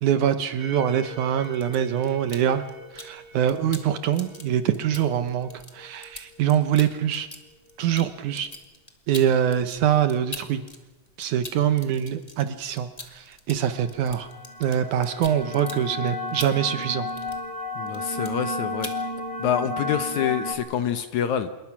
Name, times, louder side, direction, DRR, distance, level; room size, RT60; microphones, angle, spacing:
voice 1, 0.0-2.6 2.9-7.3 7.8-8.5 9.1-10.6 11.2-14.3 14.6-17.1, right 9 dB, 70° right, 10 dB, 2.2 m, -24 dB
sound 1, 0.6-7.0 13.8-20.5, left 1 dB, 20° right, 4.0 m, -34 dB
sound 2, 1.4-3.2 3.5-10.8 11.1-17.6 17.9-18.5 18.8-19.0, left 2 dB, 15° left, 1.4 m, -42 dB
voice 2, 17.8-18.9 19.4-21.6, left 9 dB, 65° left, 10 dB, 2.1 m, -26 dB
27.0 x 22.0 x 6.0 m, 1.2 s
omnidirectional pair, 4.2 m